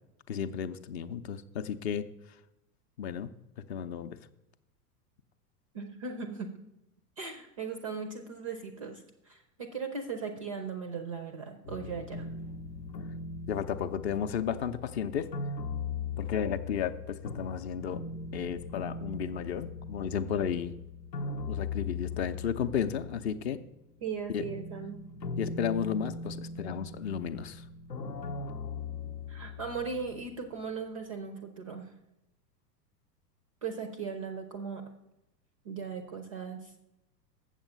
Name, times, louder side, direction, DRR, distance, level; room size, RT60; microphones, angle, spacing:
voice 1, 0.3-2.0 3.0-3.3 3.7-4.2 13.5-15.3 16.2-18.0 18.3-20.8 21.5-23.6 24.3-24.5 25.4-27.6, left 8 dB, 40° left, 9 dB, 0.5 m, -33 dB
voice 2, 5.7-6.6 7.2-12.3 24.0-25.0 29.3-31.9 33.6-34.8 35.6-36.7, right 5 dB, 25° right, 7 dB, 0.3 m, -38 dB
sound 1, 11.6-23.7 24.0-30.4, left 4 dB, 85° left, 0.7 m, -40 dB
7.3 x 7.1 x 5.3 m, 0.90 s
figure-of-eight pair, 95°, 50 cm